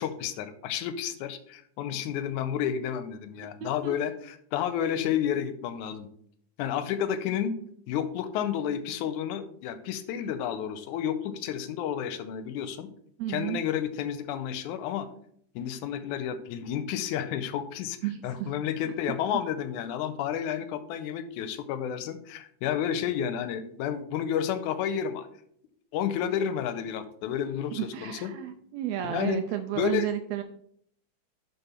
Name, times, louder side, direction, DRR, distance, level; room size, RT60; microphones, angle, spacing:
voice 1, 0.0-6.1 6.6-7.6 7.9-12.9 13.3-15.1 15.6-18.0 18.2-25.3 25.9-28.3 29.0-29.4 29.8-30.1, left 9 dB, 85° left, 12 dB, 2.1 m, -31 dB
voice 2, 3.6-4.0 13.2-13.6 18.0-18.5 27.7-30.4, right 12 dB, 80° right, 8 dB, 1.6 m, -32 dB
11.0 x 4.2 x 4.3 m, 0.66 s
omnidirectional pair, 3.5 m